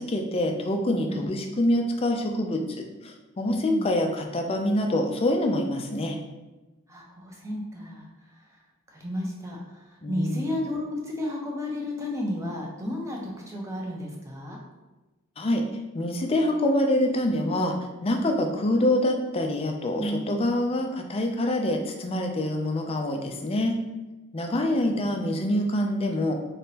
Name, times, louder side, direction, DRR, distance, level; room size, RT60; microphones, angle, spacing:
voice 1, 0.0-6.2 10.0-10.5 15.4-15.6 15.9-17.8 18.0-23.8 24.3-26.3, left 1 dB, 25° left, 4 dB, 0.4 m, -25 dB
voice 2, 3.5-3.9 6.9-8.1 8.3-8.6 8.9-14.6 19.9-20.5 24.6-25.0, left 1 dB, 15° right, -2 dB, 0.6 m, -33 dB
3.8 x 3.6 x 2.8 m, 1.1 s
head